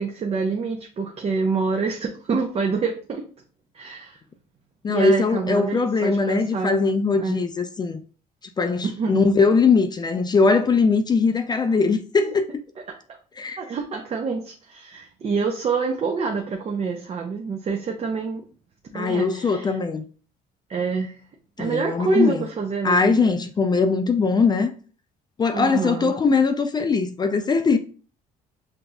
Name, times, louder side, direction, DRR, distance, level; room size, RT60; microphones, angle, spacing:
voice 1, 0.0-3.2 3.7-4.2 4.9-6.9 7.2-7.4 8.8-9.2 13.6-18.4 18.9-19.8 20.7-21.2 21.6-23.4 25.5-26.1, right 4 dB, 35° right, 0.6 m, -26 dB
voice 2, 4.8-8.0 8.6-12.5 13.4-13.6 18.9-20.0 21.6-22.4 22.8-24.7 25.4-27.8, left 4 dB, 25° left, 0.4 m, -21 dB
5.8 x 2.6 x 2.2 m
cardioid pair, 110°, 17 cm